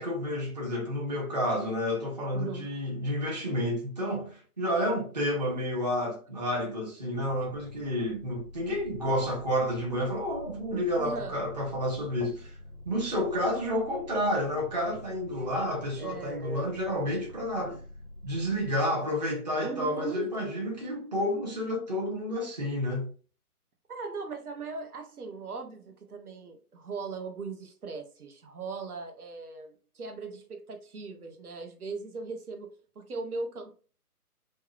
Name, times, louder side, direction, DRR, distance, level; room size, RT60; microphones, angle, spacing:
voice 1, 0.0-12.6 12.9-17.8 18.2-23.1, equal, 30° right, 0.6 m, -30 dB
voice 2, 2.3-2.8 10.9-11.4 16.0-16.8 19.6-20.5 23.9-33.8, right 4 dB, 75° right, 0.6 m, -39 dB
sound 1, 7.2-18.8, left 1 dB, 30° left, 0.5 m, -47 dB
2.6 x 2.0 x 2.3 m
figure-of-eight pair, 145°, 46 cm